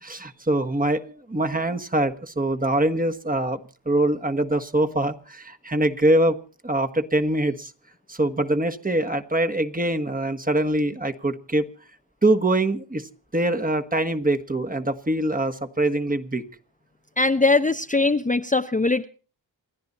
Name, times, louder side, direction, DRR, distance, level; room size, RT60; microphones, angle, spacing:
voice 1, 0.0-3.6 3.8-6.4 6.6-7.7 8.1-11.7 12.2-16.4, right 1 dB, 20° right, 6 dB, 1.5 m, -23 dB
voice 2, 17.2-19.1, left 3 dB, 15° left, 7 dB, 0.8 m, -21 dB
28.5 x 10.5 x 4.2 m, 0.37 s
cardioid pair, 55°, 46 cm